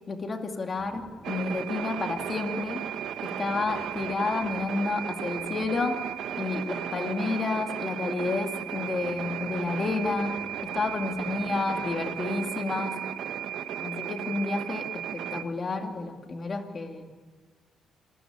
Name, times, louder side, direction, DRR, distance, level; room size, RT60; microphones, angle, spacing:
voice 1, 0.1-2.9 3.2-6.0 6.4-13.0 13.8-17.1, left 3 dB, 30° left, 5 dB, 2.3 m, -30 dB
sound 1, 0.8-16.2, right 1 dB, 5° right, 2.2 m, -51 dB
sound 2, 1.2-15.4, right 10 dB, 70° right, 1.2 m, -35 dB
27.0 x 20.0 x 9.0 m, 1.5 s
cardioid pair, 140°, 0 cm